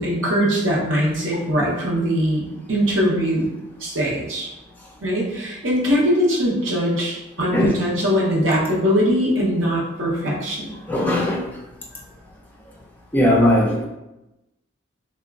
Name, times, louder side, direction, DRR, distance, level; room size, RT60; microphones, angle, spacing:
voice 1, 0.0-3.4 3.8-4.5 5.0-10.8, equal, 80° right, -4 dB, 0.8 m, -21 dB
voice 2, 7.4-7.7 10.9-11.4 13.1-13.9, left 1 dB, 10° left, -3 dB, 0.4 m, -18 dB
2.9 x 2.2 x 2.4 m, 0.94 s
head